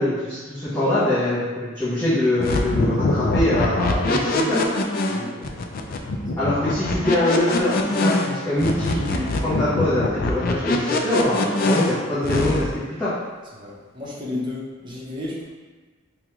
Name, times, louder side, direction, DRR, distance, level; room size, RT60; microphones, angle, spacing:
voice 1, 0.0-4.6 6.4-13.2, left 1 dB, 10° left, -13 dB, 0.8 m, -23 dB
sound 1, 2.4-12.7, left 2 dB, 45° left, 0.3 m, -23 dB
voice 2, 5.1-5.6 6.3-6.5 13.5-15.4, left 2 dB, 25° right, -6 dB, 0.8 m, -33 dB
4.6 x 2.3 x 2.9 m, 1.4 s
head